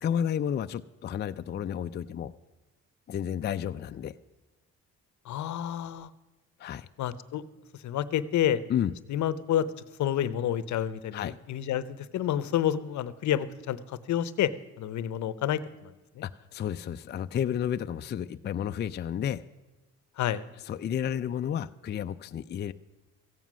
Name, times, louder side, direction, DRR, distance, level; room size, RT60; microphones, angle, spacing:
voice 1, 0.0-2.3 3.1-4.1 6.6-6.9 8.7-8.9 11.1-11.3 16.2-19.4 20.6-22.7, left 9 dB, 35° left, 10 dB, 0.4 m, -31 dB
voice 2, 5.3-6.1 7.0-7.4 7.8-8.6 9.1-9.7 10.0-14.5 14.8-15.9 20.2-20.4, left 11 dB, 70° left, 17 dB, 0.7 m, -29 dB
14.5 x 9.3 x 6.1 m, 1.2 s
cardioid pair, 90°, 30 cm